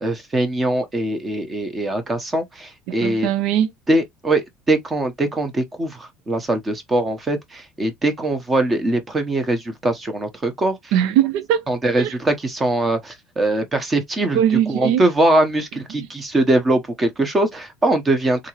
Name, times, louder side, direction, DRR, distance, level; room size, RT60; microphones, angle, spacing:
voice 1, 0.0-3.3 3.9-10.7 11.7-14.4 14.7-18.5, right 2 dB, 15° right, 0.9 m, -21 dB
voice 2, 2.9-3.7 10.9-11.7 12.0-12.1 14.3-15.0 16.0-16.1, right 10 dB, 65° right, 0.6 m, -20 dB
3.8 x 3.0 x 2.9 m
cardioid pair, 160°, 0 cm